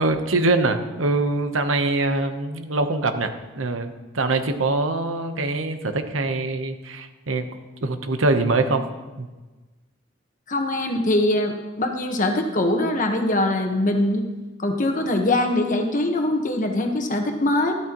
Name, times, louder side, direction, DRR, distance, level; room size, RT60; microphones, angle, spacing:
voice 1, 0.0-7.5 7.8-8.9 9.2-9.3, right 2 dB, 85° right, 7 dB, 1.0 m, -23 dB
voice 2, 10.5-14.2 14.6-17.7, left 1 dB, 40° left, 4 dB, 1.3 m, -22 dB
13.0 x 13.0 x 3.0 m, 1.2 s
head